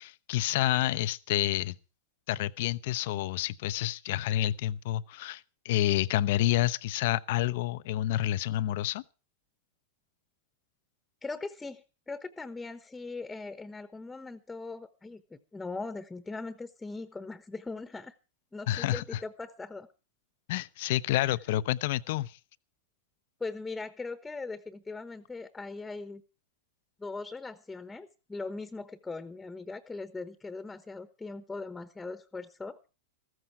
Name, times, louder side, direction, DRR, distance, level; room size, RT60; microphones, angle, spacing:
voice 1, 0.0-1.8 2.3-9.0 18.7-19.2 20.5-22.4, left 14 dB, 60° left, 0.6 m, -29 dB
voice 2, 11.2-18.1 18.5-19.9 23.4-26.2 27.0-32.8, left 3 dB, 10° left, 1.1 m, -40 dB
14.5 x 14.0 x 4.7 m
hypercardioid pair, 100°, 0 cm